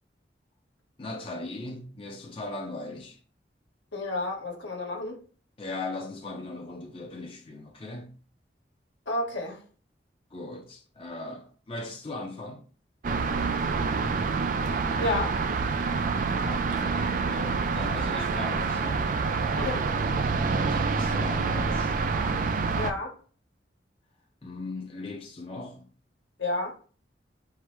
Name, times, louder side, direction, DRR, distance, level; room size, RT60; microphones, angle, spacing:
voice 1, 1.0-3.2 5.6-8.1 10.3-12.6 16.4-17.0 17.3-19.1 20.4-22.0 24.4-25.9, left 2 dB, 30° left, 0.5 m, -38 dB
voice 2, 3.9-5.2 9.1-9.6 15.0-15.4 19.6-19.8 22.8-23.1 26.4-26.7, left 2 dB, 85° left, 1.3 m, -30 dB
sound 1, 13.0-22.9, right 4 dB, 45° right, 0.3 m, -27 dB
4.6 x 2.0 x 4.5 m
head